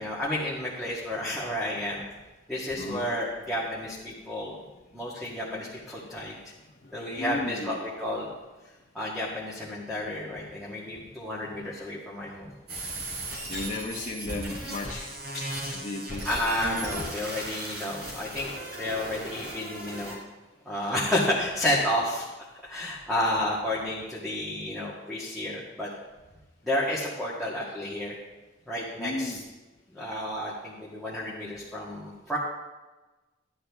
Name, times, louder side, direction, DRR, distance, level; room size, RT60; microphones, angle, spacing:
voice 1, 0.0-2.0 2.5-4.6 4.9-6.4 6.9-8.3 8.9-12.5 15.3-15.4 16.3-18.5 18.8-20.2 20.7-22.3 22.6-25.9 26.6-28.2 28.7-29.4 29.9-32.4, left 1 dB, ahead, -8 dB, 1.7 m, -31 dB
voice 2, 2.7-3.1 6.8-7.8 10.7-11.1 11.4-11.6 13.5-15.1 15.7-16.3 29.0-29.4, left 2 dB, 40° left, -3 dB, 1.1 m, -35 dB
sound 1, 12.7-20.1, right 1 dB, 55° right, 4.1 m, -36 dB
13.5 x 10.0 x 3.6 m, 1.2 s
head